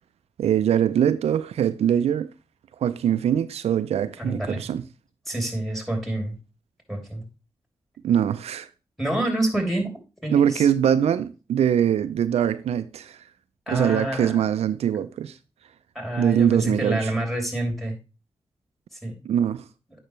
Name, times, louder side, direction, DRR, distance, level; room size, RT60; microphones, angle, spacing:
voice 1, 0.4-2.3 2.8-4.8 8.0-8.7 10.3-13.2 13.7-15.3 16.2-17.1 19.2-19.6, right 9 dB, 90° right, 0.4 m, -22 dB
voice 2, 4.2-4.7 5.3-6.4 6.9-7.3 9.0-9.9 10.2-10.7 13.7-14.4 15.9-18.0 19.0-19.1, right 1 dB, ahead, 3.0 m, -27 dB
8.8 x 5.5 x 3.1 m
cardioid pair, 55°, 10 cm